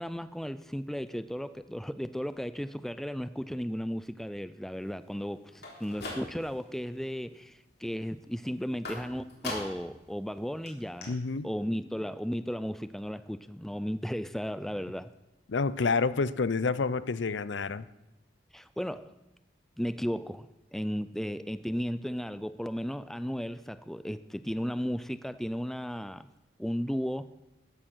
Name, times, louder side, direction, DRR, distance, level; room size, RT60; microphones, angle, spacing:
voice 1, 0.0-11.1 11.4-15.1 18.5-19.1 19.8-26.3 26.6-27.2, equal, ahead, 0.4 m, -35 dB
sound 1, 5.5-6.7 7.1-7.6 8.8-10.0 10.3-10.4 10.7-10.8 11.0-11.1, left 2 dB, 55° left, 3.7 m, -40 dB
voice 2, 11.1-11.5 15.5-17.8, left 4 dB, 80° left, 0.6 m, -28 dB
14.5 x 10.0 x 6.2 m
head